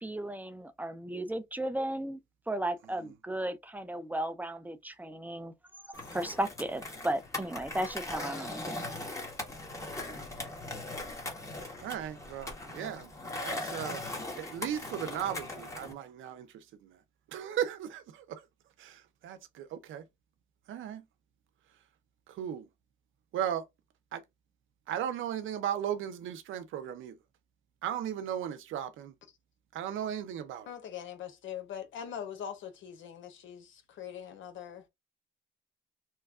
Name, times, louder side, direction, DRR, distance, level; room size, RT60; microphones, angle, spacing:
voice 1, 0.0-2.2 2.5-5.5 5.8-8.9, right 1 dB, 10° right, 0.5 m, -35 dB
Skateboard, 5.9-15.9, left 2 dB, 15° left, 1.3 m, -40 dB
voice 2, 11.8-14.0 14.4-17.0 17.3-18.4 18.8-20.0 20.7-21.0 22.3-22.7 23.3-23.6 24.1-24.2 24.9-27.2 27.8-29.1 29.7-30.7, right 10 dB, 80° right, 0.7 m, -36 dB
voice 3, 30.7-34.9, left 9 dB, 75° left, 1.0 m, -42 dB
3.1 x 2.3 x 3.5 m
cardioid pair, 90°, 20 cm